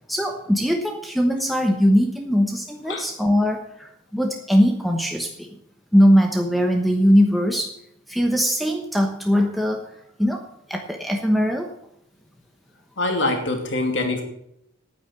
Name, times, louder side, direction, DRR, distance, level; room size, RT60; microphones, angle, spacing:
voice 1, 0.1-5.5 5.9-7.8 8.1-9.9 10.2-10.4 10.7-11.7, equal, ahead, 3 dB, 1.0 m, -20 dB
voice 2, 13.0-14.2, left 2 dB, 60° left, 3 dB, 2.6 m, -24 dB
9.4 x 9.2 x 8.0 m, 0.74 s
head